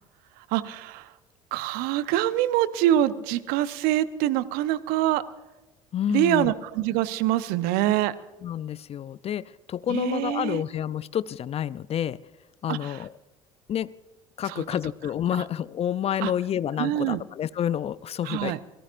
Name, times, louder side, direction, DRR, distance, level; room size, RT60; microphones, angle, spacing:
voice 1, 0.5-1.1 1.5-5.2 6.1-8.1 9.9-10.6 12.7-13.0 14.5-14.6 16.2-16.3 16.8-17.2 18.2-18.6, right 13 dB, 60° right, 15 dB, 0.9 m, -25 dB
voice 2, 5.9-6.5 8.4-12.2 12.6-13.1 13.7-13.9 14.4-18.5, left 10 dB, 35° left, 19 dB, 0.5 m, -29 dB
27.5 x 18.5 x 2.6 m, 1.1 s
figure-of-eight pair, 60°, 17 cm